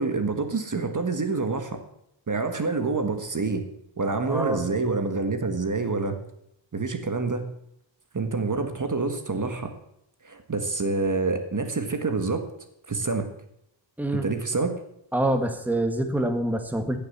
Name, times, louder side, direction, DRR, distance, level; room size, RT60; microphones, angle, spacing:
voice 1, 0.0-1.8 2.3-3.6 4.0-6.2 6.7-7.5 8.1-9.7 10.2-12.4 12.9-13.3 14.1-14.7, right 3 dB, 40° right, 7 dB, 1.6 m, -27 dB
voice 2, 4.3-4.6 14.0-14.3 15.1-17.0, right 1 dB, 5° right, 6 dB, 1.5 m, -26 dB
15.0 x 7.1 x 7.2 m, 0.76 s
wide cardioid pair, 85°, 46 cm